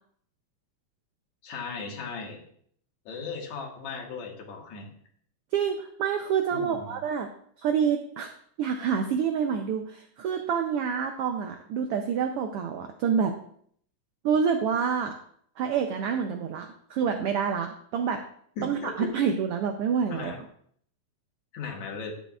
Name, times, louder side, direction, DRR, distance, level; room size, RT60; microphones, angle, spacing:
voice 1, 1.4-2.4 3.1-4.9 6.5-7.0 18.6-19.1 20.1-20.4 21.5-22.1, left 4 dB, 75° left, 1 dB, 2.7 m, -37 dB
voice 2, 5.5-7.3 7.6-8.3 8.6-13.3 14.2-15.1 15.6-18.2 18.6-20.3, right 7 dB, 90° right, 5 dB, 1.2 m, -27 dB
10.5 x 9.1 x 2.4 m, 0.62 s
omnidirectional pair, 3.3 m